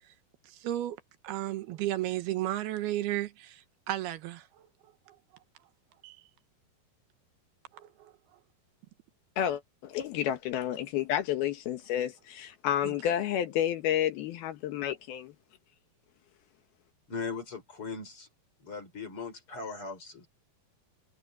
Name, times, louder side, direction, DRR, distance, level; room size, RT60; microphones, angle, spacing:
voice 1, 0.5-1.0 1.2-4.7 5.1-5.2 6.0-6.2 7.7-8.1 12.8-12.9, right 14 dB, 75° right, 3.0 m, -34 dB
voice 2, 9.4-15.3, left 10 dB, 75° left, 3.0 m, -30 dB
voice 3, 17.1-18.3 18.6-20.3, left 4 dB, 35° left, 5.8 m, -39 dB
omnidirectional pair, 4.5 m